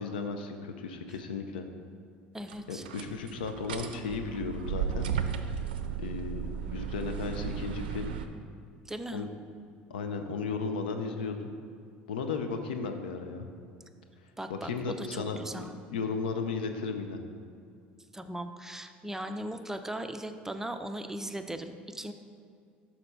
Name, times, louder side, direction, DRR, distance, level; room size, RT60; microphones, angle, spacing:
voice 1, 0.0-1.7 2.7-5.1 6.0-8.2 9.1-9.3 9.9-11.5 12.1-13.5 14.5-17.2, left 4 dB, 85° left, 6 dB, 0.6 m, -35 dB
voice 2, 2.3-2.8 8.9-9.3 14.4-14.7 15.0-15.8 18.1-22.1, right 1 dB, 10° right, 8 dB, 0.5 m, -38 dB
sound 1, 2.5-8.3, right 7 dB, 85° right, 0.4 m, -35 dB
6.6 x 4.2 x 5.6 m, 2.4 s
hypercardioid pair, 75°, 5 cm